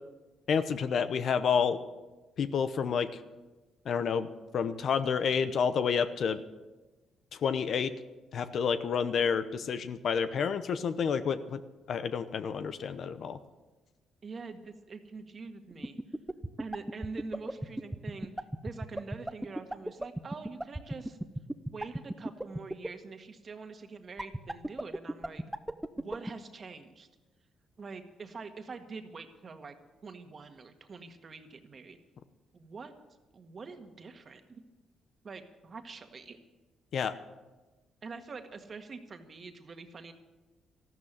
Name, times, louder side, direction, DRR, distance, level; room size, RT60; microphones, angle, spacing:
voice 1, 0.5-1.8 2.4-3.1 3.9-4.3 4.5-6.4 7.3-7.9 8.3-11.6 11.9-13.4 36.9-37.1, left 6 dB, 60° left, 12 dB, 0.8 m, -29 dB
voice 2, 14.2-16.0 16.6-21.2 21.7-25.4 26.0-27.1 27.8-29.7 30.0-32.0 32.5-32.9 33.3-34.6 35.2-36.4 38.0-40.1, right 4 dB, 40° right, 7 dB, 1.7 m, -45 dB
sound 1, 15.7-22.9 24.2-26.3, right 1 dB, 5° right, 0.8 m, -33 dB
14.0 x 12.0 x 7.4 m, 1.2 s
cardioid pair, 90°, 0 cm